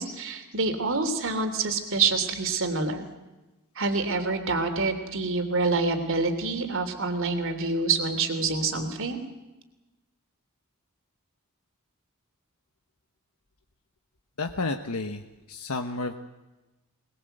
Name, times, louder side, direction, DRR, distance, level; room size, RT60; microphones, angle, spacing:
voice 1, 0.0-3.0 3.7-9.2, right 3 dB, 60° right, 6 dB, 3.2 m, -27 dB
voice 2, 14.4-15.2 15.5-16.1, left 3 dB, 85° left, 5 dB, 1.3 m, -31 dB
21.5 x 21.5 x 8.0 m, 1.1 s
head